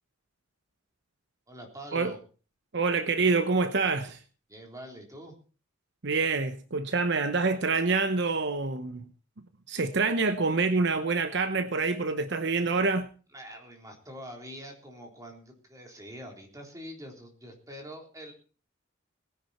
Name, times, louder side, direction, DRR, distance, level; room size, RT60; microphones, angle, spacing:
voice 1, 1.5-2.2 4.5-5.4 13.3-18.3, equal, 15° right, 3.6 m, -45 dB
voice 2, 2.7-4.2 6.0-9.0 9.7-13.1, right 4 dB, 60° right, 0.9 m, -26 dB
19.0 x 10.0 x 4.3 m
head